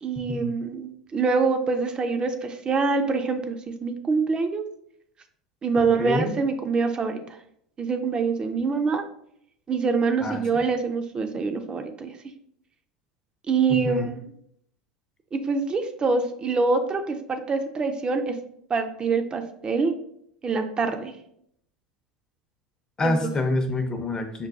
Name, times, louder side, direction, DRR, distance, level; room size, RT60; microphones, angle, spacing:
voice 1, 0.0-4.6 5.6-7.2 7.8-9.0 9.7-12.1 13.5-14.1 15.3-18.4 18.7-19.9 20.4-21.1 23.0-23.3, right 4 dB, 25° right, 7 dB, 0.4 m, -25 dB
voice 2, 5.8-6.4 10.2-10.6 13.7-14.1 23.0-24.5, left 2 dB, 25° left, 5 dB, 0.6 m, -27 dB
5.2 x 2.2 x 2.4 m, 0.71 s
hypercardioid pair, 85°, 3 cm